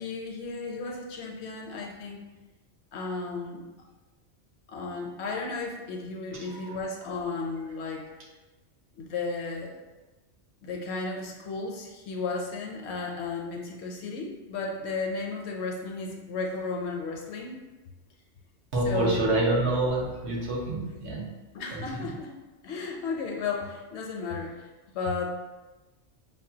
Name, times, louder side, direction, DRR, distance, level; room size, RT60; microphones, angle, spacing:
voice 1, 0.0-2.3 2.9-3.6 4.7-8.0 9.0-9.8 10.6-17.6 18.8-19.2 20.8-20.9 21.5-22.4 22.6-24.7 24.9-25.3, left 4 dB, 70° left, 1 dB, 0.8 m, -34 dB
voice 2, 6.3-6.8 18.7-21.2 21.7-22.1, right 2 dB, 70° right, -4 dB, 1.2 m, -28 dB
5.7 x 2.3 x 2.7 m, 1.2 s
omnidirectional pair, 1.2 m